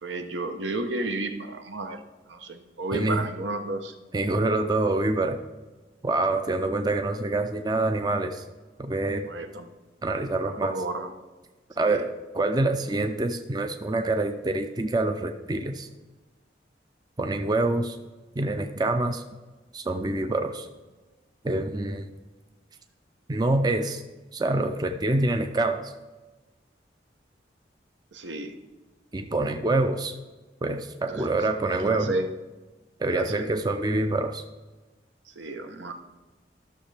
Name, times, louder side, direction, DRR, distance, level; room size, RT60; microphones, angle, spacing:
voice 1, 0.0-2.0 2.3-3.9 9.3-9.7 10.4-11.1 11.8-12.0 28.1-28.5 31.0-32.3 33.1-33.5 35.3-35.9, right 2 dB, 80° right, 6 dB, 0.9 m, -32 dB
voice 2, 2.9-3.3 4.1-5.4 6.0-8.4 8.8-9.3 10.0-10.8 11.8-15.9 17.2-18.0 18.4-19.2 19.7-20.7 21.4-22.1 23.3-24.0 24.3-25.9 29.1-30.1 30.6-32.1 33.0-34.4, right 2 dB, 20° right, 6 dB, 0.4 m, -26 dB
12.5 x 6.5 x 3.4 m, 1.2 s
head